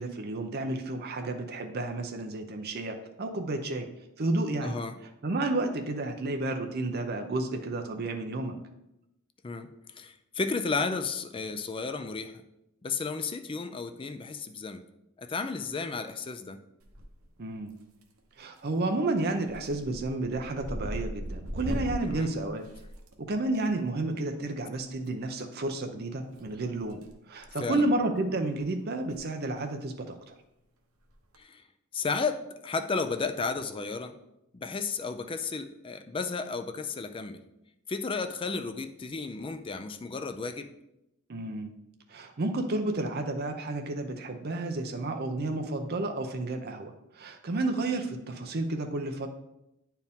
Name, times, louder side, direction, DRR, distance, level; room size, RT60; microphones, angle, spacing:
voice 1, 0.0-3.9 4.2-4.8 5.2-8.6 17.4-17.7 18.4-22.6 23.2-30.3 41.3-41.7 42.1-49.3, right 2 dB, 50° right, 5 dB, 0.6 m, -31 dB
voice 2, 4.6-5.0 9.4-9.7 9.9-12.4 12.8-14.8 15.2-16.6 22.0-22.3 27.6-27.8 31.4-31.6 31.9-34.1 34.5-37.4 37.9-40.7, left 4 dB, 25° left, 9 dB, 0.4 m, -33 dB
sound 1, 16.8-17.4 17.7-18.2 18.6-18.8 19.2-23.6 24.9-25.1 26.3-27.1 27.4-27.6 28.2-28.3 28.5-28.6 29.0-29.2 29.4-29.5 31.1-31.4, equal, 90° right, 0.9 m, -38 dB
9.2 x 4.5 x 3.6 m, 0.87 s
head